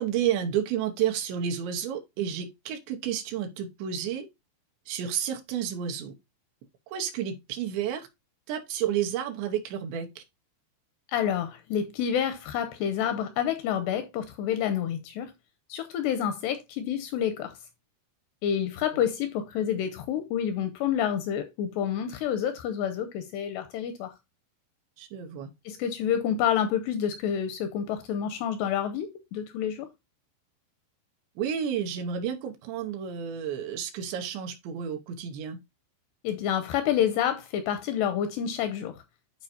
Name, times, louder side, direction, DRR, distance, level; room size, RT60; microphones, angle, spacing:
voice 1, 0.0-4.3 4.9-6.1 6.9-8.0 8.5-10.2 25.0-25.5 31.4-35.6, right 9 dB, 75° right, 3.1 m, -31 dB
voice 2, 11.1-15.3 15.7-17.6 18.4-24.1 25.7-29.9 36.2-39.0, left 9 dB, 85° left, 2.5 m, -28 dB
12.0 x 4.7 x 2.6 m
omnidirectional pair, 5.4 m